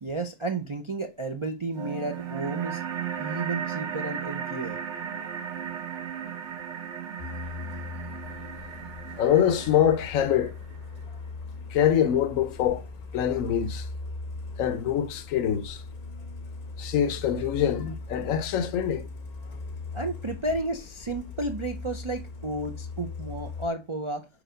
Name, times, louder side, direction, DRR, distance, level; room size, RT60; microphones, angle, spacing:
voice 1, 0.0-2.8 3.2-4.8 19.9-24.3, right 2 dB, 45° right, 0.4 m, -32 dB
sound 1, 1.8-10.8, right 8 dB, 60° right, 1.2 m, -36 dB
Truck, 7.2-23.7, left 3 dB, 40° left, 0.6 m, -39 dB
voice 2, 9.2-10.6 11.7-12.8 13.1-13.9 14.6-15.8 16.8-19.1, left 9 dB, 75° left, 1.0 m, -24 dB
4.9 x 4.4 x 5.0 m
omnidirectional pair, 1.4 m